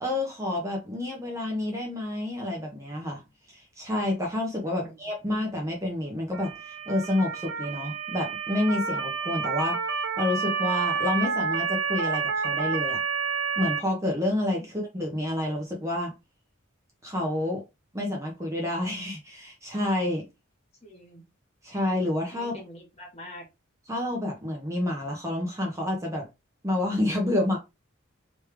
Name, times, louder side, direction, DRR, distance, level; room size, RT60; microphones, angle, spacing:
voice 1, 0.0-3.2 3.5-9.8 10.2-13.0 13.6-16.1 17.0-17.6 17.9-20.2 21.6-22.5 23.9-26.2 26.6-27.6, left 1 dB, 15° right, 1.0 m, -29 dB
voice 2, 4.7-5.1 20.8-21.2 22.3-23.4, equal, 30° left, 1.6 m, -45 dB
Motor vehicle (road) / Siren, 6.3-13.8, right 5 dB, 60° right, 0.7 m, -29 dB
3.3 x 3.2 x 3.3 m
head